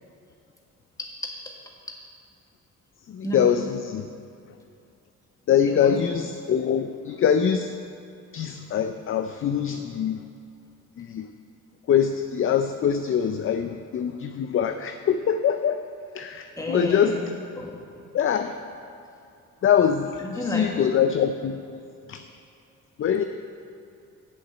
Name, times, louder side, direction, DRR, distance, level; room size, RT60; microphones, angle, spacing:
voice 1, 1.0-1.3 1.9-2.0 3.2-3.4 5.7-6.0 16.6-17.8 20.2-20.7, left 1 dB, 10° left, -1 dB, 1.7 m, -32 dB
voice 2, 3.1-4.1 5.5-7.7 8.3-10.2 11.0-11.3 11.9-15.8 16.1-17.2 18.1-18.5 19.6-21.8 22.1-22.2 23.0-23.2, left 8 dB, 45° left, 8 dB, 0.5 m, -23 dB
8.1 x 7.2 x 7.6 m, 2.6 s
cardioid pair, 90°, 30 cm